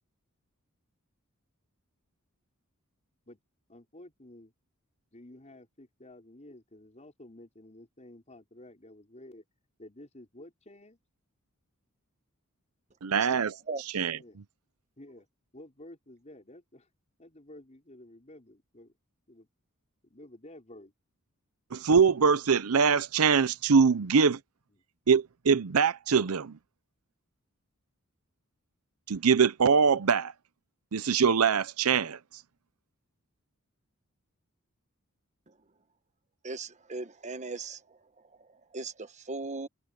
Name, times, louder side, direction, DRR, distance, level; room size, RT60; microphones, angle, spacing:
voice 1, 3.7-4.5 5.1-9.5 9.8-11.0 14.1-14.4 15.0-15.3 15.5-16.9 17.2-18.9 19.3-19.5 20.0-20.9 24.7-24.8, left 1 dB, 30° left, 5.1 m, -51 dB
voice 2, 13.0-13.6 13.9-14.2 21.7-24.4 25.1-26.6 29.1-30.3 30.9-32.2, right 6 dB, 85° right, 0.7 m, -23 dB
voice 3, 36.4-37.8 38.7-39.7, right 3 dB, 35° right, 1.2 m, -37 dB
head